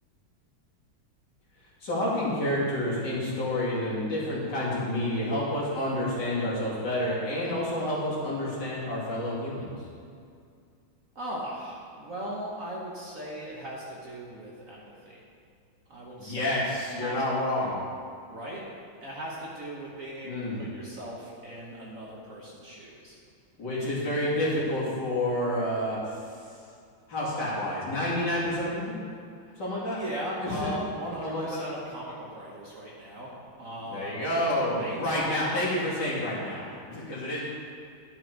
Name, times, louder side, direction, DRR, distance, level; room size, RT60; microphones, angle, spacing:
voice 1, 1.8-9.7 16.2-17.7 20.2-20.6 23.6-26.2 27.1-29.0 29.6-30.0 30.4-30.7 31.2-31.7 33.9-37.4, left 1 dB, 55° left, -8 dB, 3.0 m, -29 dB
voice 2, 11.1-15.2 15.9-16.6 17.0-17.2 18.3-18.6 19.0-23.2 29.4-29.6 29.8-35.5, equal, 45° right, -4 dB, 1.4 m, -38 dB
11.5 x 6.2 x 4.5 m, 2.3 s
omnidirectional pair, 2.2 m